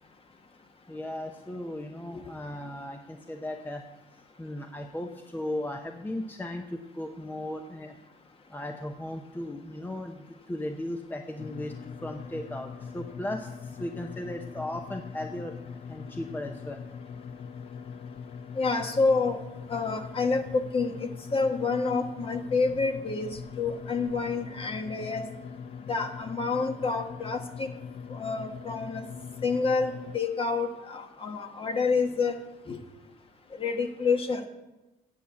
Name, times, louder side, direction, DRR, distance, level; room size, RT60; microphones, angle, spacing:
voice 1, 0.9-3.8 4.4-7.9 8.5-13.5 13.8-15.5 15.9-16.8, left 1 dB, 10° left, 5 dB, 0.7 m, -36 dB
sound 1, 11.4-30.2, left 6 dB, 50° left, 0.7 m, -42 dB
voice 2, 18.5-19.4 19.7-25.2 25.9-27.7 28.1-29.0 29.4-32.4 32.7-32.8 33.6-34.4, left 4 dB, 35° left, 6 dB, 1.3 m, -28 dB
9.0 x 7.2 x 8.1 m, 1.0 s
cardioid pair, 110°, 17 cm